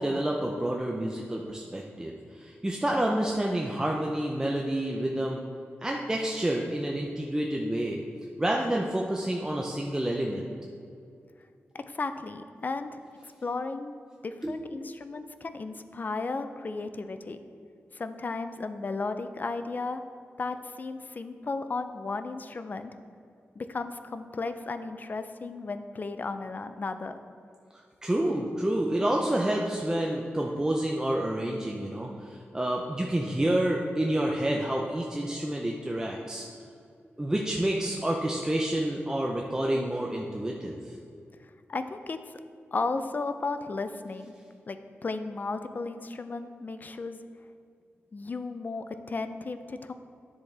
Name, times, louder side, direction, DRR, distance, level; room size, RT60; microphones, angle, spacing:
voice 1, 0.0-5.4 5.8-8.0 8.4-10.5 14.4-15.1 27.7-36.5 37.2-41.0, right 1 dB, 15° right, -1 dB, 0.6 m, -29 dB
voice 2, 11.7-14.0 14.2-17.4 17.9-20.0 20.4-22.9 23.6-27.2 41.7-42.2 42.7-44.3 44.7-47.3 48.1-49.9, left 3 dB, 40° left, 9 dB, 0.5 m, -34 dB
10.0 x 6.9 x 3.4 m, 2.4 s
wide cardioid pair, 85°, 4 cm